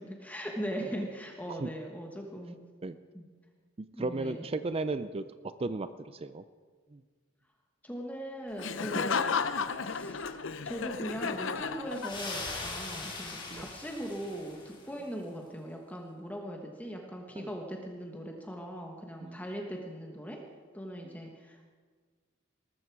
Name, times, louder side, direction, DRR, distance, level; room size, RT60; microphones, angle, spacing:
voice 1, 0.0-2.6 3.1-3.2 3.9-4.4 7.8-9.2 9.7-20.4 20.7-21.6, equal, 10° left, 1 dB, 1.2 m, -40 dB
voice 2, 3.8-6.4 6.9-7.0 8.9-9.1 13.5-13.7 17.4-17.5 19.2-19.5, right 3 dB, 30° right, 12 dB, 0.4 m, -35 dB
Laughter, 8.6-12.5, left 5 dB, 70° left, 0.7 m, -33 dB
sound 1, 11.9-14.9, left 3 dB, 25° left, 3.0 m, -40 dB
19.0 x 14.0 x 4.7 m, 1.5 s
head